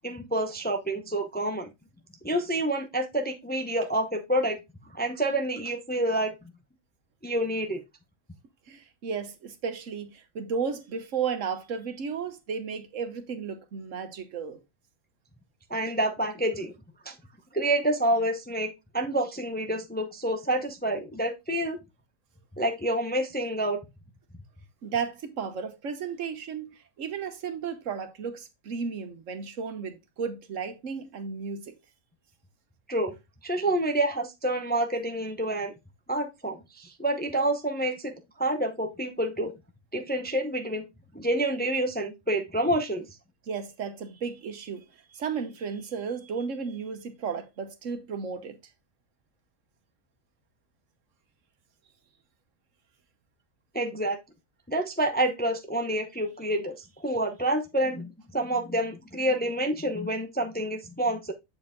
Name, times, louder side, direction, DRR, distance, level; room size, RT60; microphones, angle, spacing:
voice 1, 0.0-1.7 2.2-4.6 4.9-6.3 7.2-7.8 15.7-16.7 17.0-17.2 17.5-21.8 22.6-23.8 32.9-33.1 33.4-35.7 36.1-39.5 39.9-40.8 41.1-43.0 53.7-54.2 54.7-61.3, right 1 dB, 10° left, 0.6 m, -28 dB
voice 2, 8.7-14.6 24.8-31.7 43.5-44.8 45.1-48.6, right 6 dB, 70° right, 1.3 m, -34 dB
7.6 x 4.5 x 3.6 m
omnidirectional pair, 1.4 m